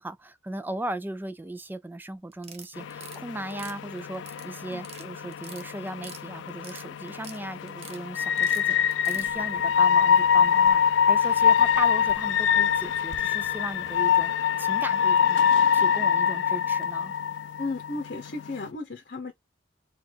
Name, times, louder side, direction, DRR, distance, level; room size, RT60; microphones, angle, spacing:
voice 1, 0.0-17.1, right 1 dB, 10° right, 0.4 m, -37 dB
sound 1, 2.3-3.2 3.5-4.5 4.7-5.1 5.3-6.2 6.5-7.4 7.7-8.0 8.4-9.3, right 6 dB, 35° right, 0.8 m, -45 dB
sound 2, 2.8-18.7, left 7 dB, 80° left, 0.3 m, -24 dB
sound 3, 9.1-14.3, right 3 dB, 85° right, 0.8 m, -52 dB
voice 2, 17.6-19.3, left 3 dB, 55° left, 0.9 m, -34 dB
3.9 x 2.4 x 4.5 m
head